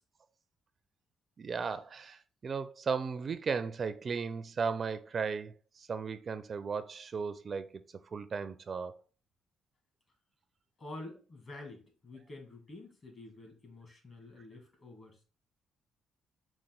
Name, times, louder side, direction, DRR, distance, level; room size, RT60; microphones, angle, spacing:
voice 1, 1.4-7.8 8.1-9.0, right 5 dB, 45° right, 0.4 m, -36 dB
voice 2, 10.8-15.2, left 2 dB, 45° left, 2.0 m, -48 dB
5.3 x 2.4 x 3.7 m
cardioid pair, 90°, 0 cm